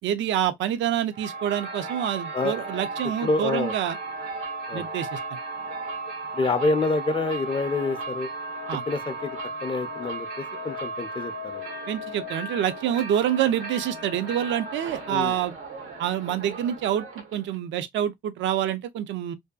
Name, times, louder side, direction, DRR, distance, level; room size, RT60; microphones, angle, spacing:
voice 1, 0.0-4.0 4.7-5.2 8.7-8.8 11.9-15.6 16.0-19.3, right 10 dB, 70° right, 0.4 m, -27 dB
sound 1, 1.1-17.6, right 2 dB, 85° right, 0.8 m, -35 dB
voice 2, 3.2-3.7 4.7-4.9 6.3-8.3 8.9-9.3 9.6-10.3 10.6-11.7 15.1-15.3, left 3 dB, 25° left, 0.4 m, -27 dB
2.6 x 2.2 x 2.2 m
cardioid pair, 90°, 20 cm